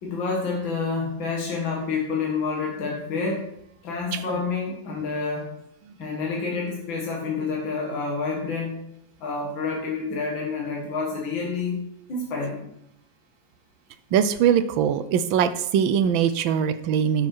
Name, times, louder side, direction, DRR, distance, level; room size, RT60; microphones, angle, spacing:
voice 1, 0.0-3.5 3.8-5.5 6.0-8.8 9.2-12.7, left 4 dB, 80° left, -2 dB, 2.4 m, -28 dB
voice 2, 14.1-17.3, right 8 dB, 90° right, 12 dB, 1.4 m, -22 dB
11.0 x 6.5 x 4.6 m, 0.78 s
omnidirectional pair, 2.1 m